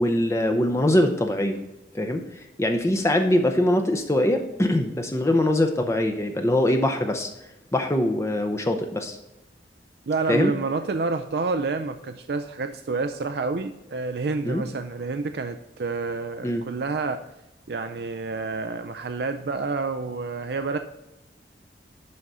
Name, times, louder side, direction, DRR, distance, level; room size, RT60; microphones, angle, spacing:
voice 1, 0.0-1.6 1.9-7.3 7.7-9.2 10.3-10.5 14.4-14.6 16.4-16.6, left 1 dB, 15° left, 5 dB, 0.6 m, -23 dB
voice 2, 10.1-17.2 17.7-20.8, right 3 dB, 60° right, 8 dB, 0.4 m, -28 dB
11.0 x 3.9 x 5.5 m, 0.96 s
head